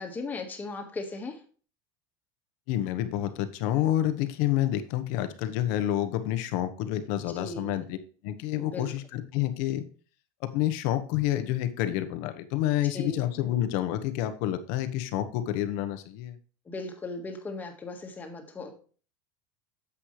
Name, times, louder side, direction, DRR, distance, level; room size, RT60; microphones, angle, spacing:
voice 1, 0.0-1.4 7.3-7.7 8.6-8.9 12.9-13.2 16.7-18.7, left 3 dB, 15° left, 4 dB, 1.7 m, -37 dB
voice 2, 2.7-8.0 8.2-9.8 10.4-16.4, left 13 dB, 65° left, 10 dB, 1.2 m, -28 dB
10.0 x 7.5 x 3.3 m, 0.39 s
supercardioid pair, 150°, 10 cm